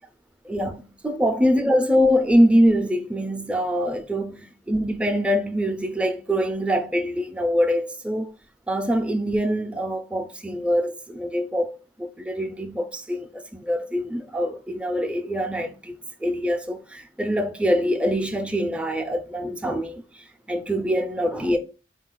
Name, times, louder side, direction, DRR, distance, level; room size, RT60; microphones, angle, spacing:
voice 1, 0.4-8.3 8.7-21.6, equal, 5° right, 0.4 m, -24 dB
4.1 x 2.3 x 3.7 m
head